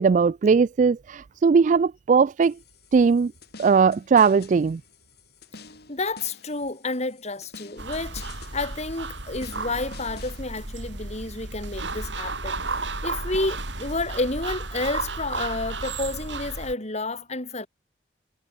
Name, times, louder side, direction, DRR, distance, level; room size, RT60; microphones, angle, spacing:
voice 1, 0.0-2.6 2.9-3.3 3.6-4.8, right 5 dB, 45° right, 0.3 m, -19 dB
sound 1, 2.4-10.4, left 4 dB, 60° left, 7.8 m, -48 dB
voice 2, 5.9-8.3 8.5-12.6 13.0-17.7, left 2 dB, 40° left, 4.2 m, -30 dB
sound 2, 7.8-16.7, right 3 dB, 85° right, 6.6 m, -33 dB
head